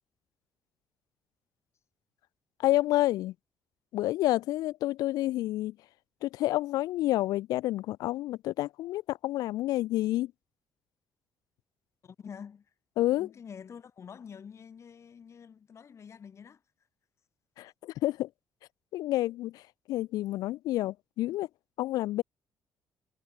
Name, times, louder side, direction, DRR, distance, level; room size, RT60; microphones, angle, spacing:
voice 1, 2.6-3.3 3.9-5.8 6.2-10.3 13.0-13.3 17.6-18.3 18.9-19.6 19.9-21.5 21.8-22.2, left 16 dB, 80° left, 0.3 m, -29 dB
voice 2, 12.0-12.7 13.0-16.6, left 7 dB, 45° left, 2.8 m, -47 dB
cardioid pair, 85°, 6 cm